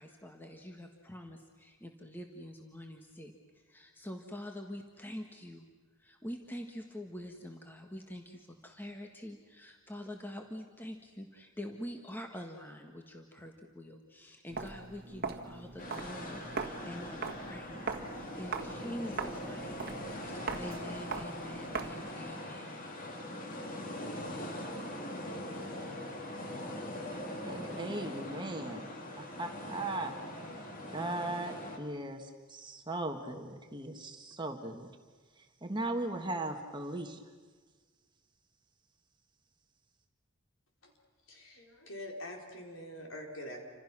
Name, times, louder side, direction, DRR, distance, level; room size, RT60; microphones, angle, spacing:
voice 1, 0.0-5.6 6.0-22.9, equal, 10° left, 2 dB, 1.5 m, -46 dB
Walk footsteps, 14.5-22.1, right 4 dB, 45° right, 1.7 m, -41 dB
sound 1, 15.8-31.8, left 1 dB, 40° left, 2.9 m, -42 dB
voice 2, 27.4-28.9 29.2-30.1 30.9-34.9 35.4-37.2, right 2 dB, 20° right, 4 dB, 1.6 m, -38 dB
voice 3, 41.3-43.6, left 1 dB, 60° left, 1 dB, 4.5 m, -45 dB
29.0 x 26.5 x 6.2 m, 1.4 s
head